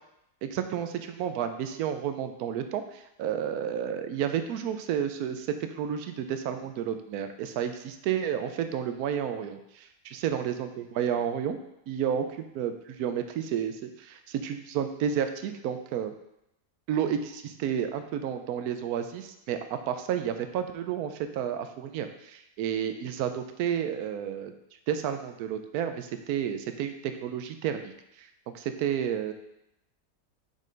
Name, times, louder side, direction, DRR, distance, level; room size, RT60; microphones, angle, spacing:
voice 1, 0.4-11.6 11.9-16.1 16.9-24.5 24.9-27.9 28.2-28.3 28.5-29.3, right 9 dB, 70° right, 8 dB, 1.0 m, -31 dB
5.5 x 5.2 x 3.9 m, 0.83 s
omnidirectional pair, 1.8 m